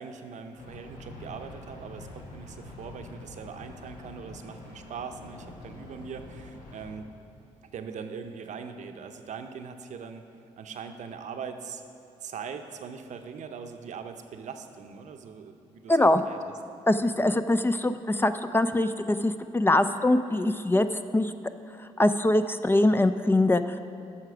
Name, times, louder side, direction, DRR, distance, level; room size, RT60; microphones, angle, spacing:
voice 1, 0.0-7.1 7.7-10.3 10.6-11.8 12.2-16.4, right 6 dB, 65° right, 7 dB, 0.7 m, -41 dB
sound 1, 0.6-6.9, left 2 dB, 85° left, 1.1 m, -45 dB
voice 2, 15.9-16.2 16.9-20.9 21.1-21.3 21.8-23.8, left 1 dB, 15° left, 10 dB, 0.3 m, -23 dB
7.9 x 5.9 x 5.8 m, 2.7 s
supercardioid pair, 60°, 13 cm